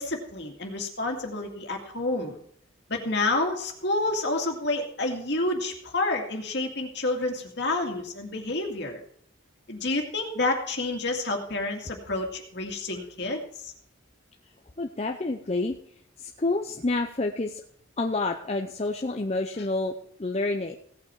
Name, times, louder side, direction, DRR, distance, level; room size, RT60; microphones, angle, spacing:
voice 1, 0.0-2.4 2.9-9.0 9.7-13.7 19.6-19.7, left 2 dB, 55° left, 2 dB, 2.3 m, -29 dB
voice 2, 14.8-15.7 16.2-17.6 18.0-19.9 20.2-20.8, left 2 dB, 30° left, 3 dB, 0.7 m, -28 dB
17.0 x 8.6 x 4.6 m, 0.64 s
head